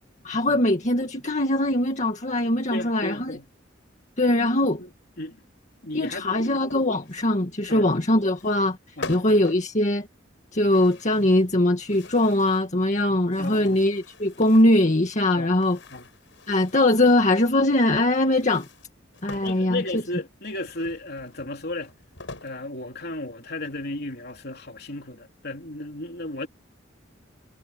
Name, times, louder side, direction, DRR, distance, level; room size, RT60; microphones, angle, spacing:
voice 1, 0.2-3.4 4.2-4.8 5.9-8.8 9.1-10.1 10.5-15.8 16.5-18.7 19.2-20.0, left 1 dB, 40° left, 2.0 m, -21 dB
voice 2, 2.7-3.5 4.4-4.9 5.2-5.4 5.8-6.5 7.7-7.9 9.0-9.2 13.4-13.8 15.4-15.5 15.9-16.1 19.4-21.9 22.4-26.5, left 2 dB, 55° left, 3.6 m, -34 dB
sound 1, 6.4-7.3 8.3-8.7 9.0-9.7 10.7-11.5 11.8-12.7 13.2-14.8 15.5-17.5 18.2-19.7 20.7-22.6 23.1-23.2 23.7-24.5, left 3 dB, 75° left, 6.4 m, -44 dB
head